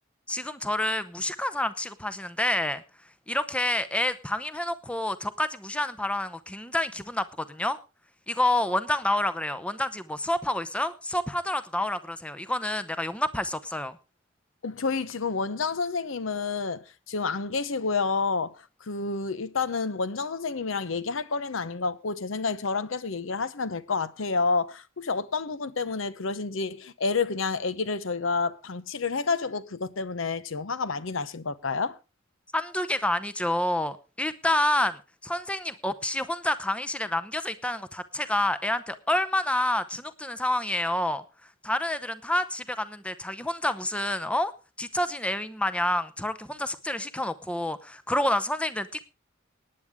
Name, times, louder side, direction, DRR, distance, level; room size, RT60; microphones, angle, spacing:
voice 1, 0.3-2.8 3.3-7.8 8.3-14.0 32.5-41.2 41.6-44.5 44.8-49.0, left 1 dB, 5° left, 0.7 m, -28 dB
voice 2, 14.6-32.0, left 4 dB, 70° left, 0.8 m, -29 dB
18.0 x 9.8 x 3.6 m
head